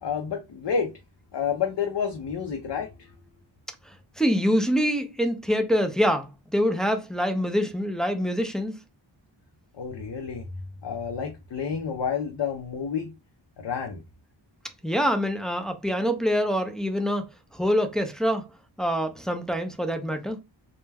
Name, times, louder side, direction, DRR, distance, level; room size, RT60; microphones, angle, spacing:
voice 1, 0.0-0.9 1.3-3.1 9.8-10.5 10.8-13.1 13.6-14.0, left 6 dB, 60° left, 0.6 m, -29 dB
voice 2, 4.2-8.8 14.8-17.3 17.5-18.4 18.8-20.4, equal, ahead, 0.3 m, -25 dB
2.2 x 2.2 x 3.3 m
wide cardioid pair, 60°, 47 cm